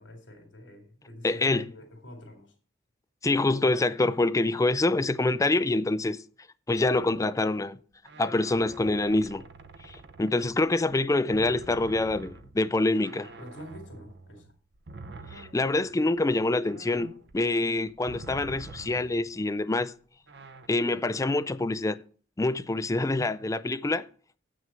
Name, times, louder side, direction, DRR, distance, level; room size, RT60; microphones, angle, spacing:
voice 1, 0.0-2.5 13.4-14.5 17.6-17.8, equal, 80° left, 3.0 m, -47 dB
voice 2, 1.2-1.7 3.2-6.2 6.7-7.8 8.2-9.4 9.8-13.3 15.3-19.9 20.7-22.0 22.4-24.1, left 2 dB, 20° left, 0.4 m, -26 dB
sound 1, 6.8-7.4 8.1-11.0 11.3-19.5 20.3-20.7, right 3 dB, 65° right, 0.8 m, -47 dB
7.9 x 6.2 x 7.5 m
head